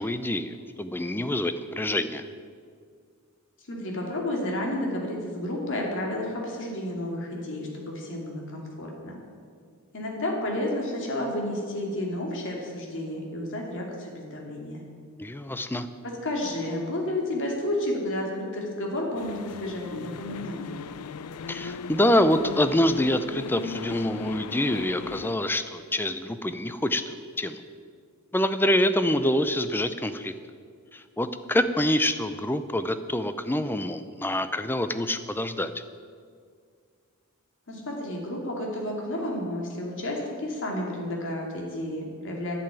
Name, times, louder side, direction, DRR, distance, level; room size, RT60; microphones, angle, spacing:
voice 1, 0.0-2.2 15.2-15.9 21.5-27.6 28.3-30.3 30.9-35.7, left 1 dB, 10° left, 11 dB, 0.5 m, -26 dB
voice 2, 3.7-9.2 9.9-14.8 16.0-20.8 37.7-42.5, left 1 dB, 60° left, -1 dB, 2.7 m, -31 dB
sound 1, 19.1-25.3, left 6 dB, 80° left, 0.4 m, -39 dB
11.0 x 6.9 x 9.6 m, 2.1 s
head